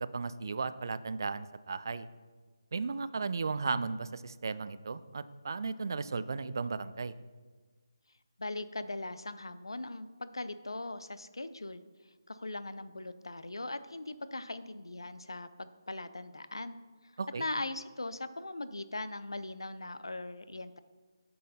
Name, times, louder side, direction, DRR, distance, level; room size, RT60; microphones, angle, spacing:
voice 1, 0.0-2.1 2.7-7.1 17.2-17.4, right 4 dB, 55° right, 14 dB, 0.3 m, -35 dB
voice 2, 8.4-11.8 12.3-16.8 17.4-20.8, left 2 dB, 85° left, 13 dB, 0.4 m, -40 dB
7.5 x 5.5 x 4.1 m, 1.4 s
figure-of-eight pair, 160°, 2 cm